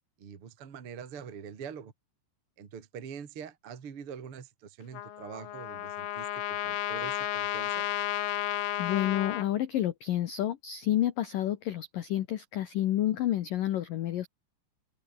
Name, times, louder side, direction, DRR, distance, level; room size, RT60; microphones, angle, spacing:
voice 1, 0.2-1.9 2.6-7.9, right 7 dB, 35° right, 2.4 m, -44 dB
Trumpet, 4.9-9.5, left 12 dB, 60° left, 3.2 m, -33 dB
voice 2, 8.8-14.3, left 12 dB, 80° left, 1.9 m, -29 dB
open air
omnidirectional pair, 5.8 m